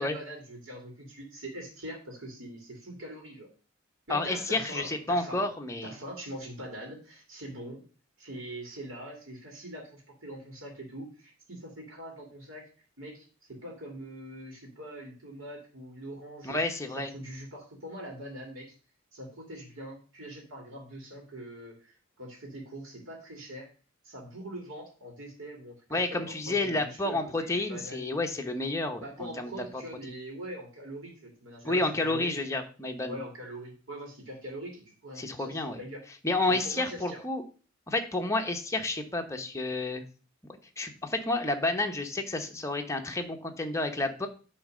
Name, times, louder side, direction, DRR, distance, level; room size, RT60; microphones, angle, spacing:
voice 1, 0.0-3.5 4.1-5.5 5.8-7.8 8.2-12.7 13.0-16.6 17.0-18.7 19.1-23.7 24.0-28.0 29.0-32.3 33.1-36.0 36.5-37.2, right 1 dB, 75° right, 0 dB, 2.1 m, -43 dB
voice 2, 4.1-5.9 16.4-17.1 25.9-29.8 31.6-33.2 35.2-35.8 36.2-37.4 37.9-40.0 40.8-44.3, left 2 dB, 15° left, 4 dB, 0.9 m, -30 dB
8.9 x 3.2 x 6.2 m, 0.37 s
head